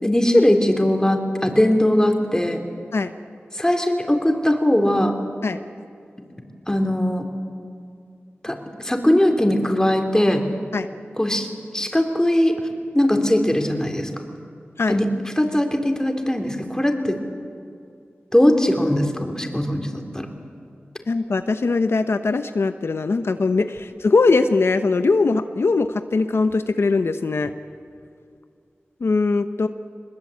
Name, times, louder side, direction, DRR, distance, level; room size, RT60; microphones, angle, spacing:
voice 1, 0.0-2.6 3.5-5.1 6.7-7.2 8.4-10.4 11.2-11.5 11.7-12.6 12.9-14.1 14.9-15.1 15.4-17.2 18.3-20.3, left 1 dB, 15° left, 4 dB, 3.5 m, -20 dB
voice 2, 21.1-27.5 29.0-29.7, left 3 dB, 75° left, 9 dB, 0.9 m, -21 dB
22.0 x 21.0 x 8.5 m, 2.4 s
cardioid pair, 45°, 4 cm